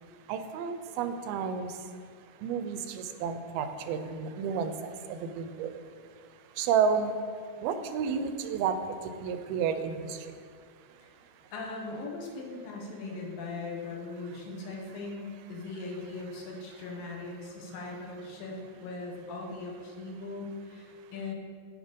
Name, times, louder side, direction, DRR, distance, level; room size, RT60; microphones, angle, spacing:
voice 1, 0.3-1.9 2.4-5.7 6.6-7.1 7.6-10.3 14.2-14.4, right 6 dB, 85° right, 9 dB, 2.5 m, -31 dB
voice 2, 11.5-21.3, left 3 dB, 75° left, -1 dB, 3.1 m, -39 dB
8.8 x 6.9 x 5.2 m, 2.2 s
omnidirectional pair, 4.3 m